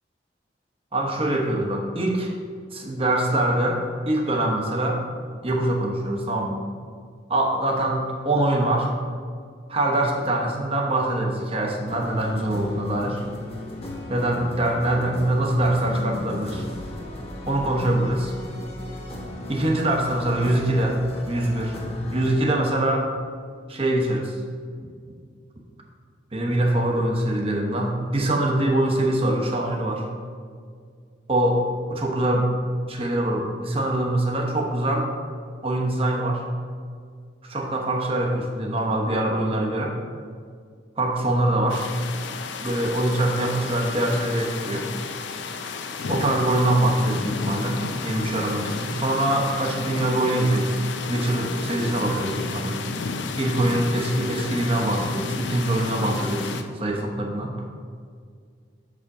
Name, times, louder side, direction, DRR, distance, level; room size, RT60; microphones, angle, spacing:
voice 1, 0.9-2.3 2.7-5.0 5.4-6.6 7.3-8.9 9.7-13.2 14.1-16.6 17.5-18.3 19.5-21.0 21.3-21.8 22.1-23.1 23.7-24.3 24.8-24.9 26.3-30.1 31.3-31.6 31.9-32.6 32.9-35.1 35.6-36.4 37.4-39.9 41.0-41.9 42.6-44.9 46.1-50.8 51.1-52.8 53.4-57.5, right 1 dB, 30° right, 0 dB, 1.0 m, -23 dB
sound 1, 11.9-22.3, left 1 dB, 35° left, 0.9 m, -36 dB
sound 2, 41.7-56.6, left 4 dB, 85° left, 0.5 m, -32 dB
6.5 x 5.1 x 4.8 m, 2.1 s
head